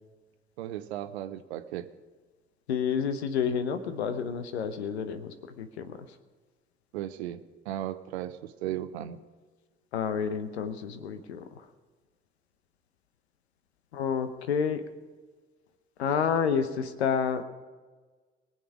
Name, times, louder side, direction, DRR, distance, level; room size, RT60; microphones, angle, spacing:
voice 1, 0.6-1.9 6.9-9.2, right 12 dB, 80° right, 12 dB, 0.8 m, -36 dB
voice 2, 2.7-6.0 9.9-11.4 13.9-14.8 16.0-17.4, left 7 dB, 85° left, 10 dB, 0.9 m, -29 dB
22.5 x 7.8 x 4.9 m, 1.4 s
figure-of-eight pair, 45°, 32 cm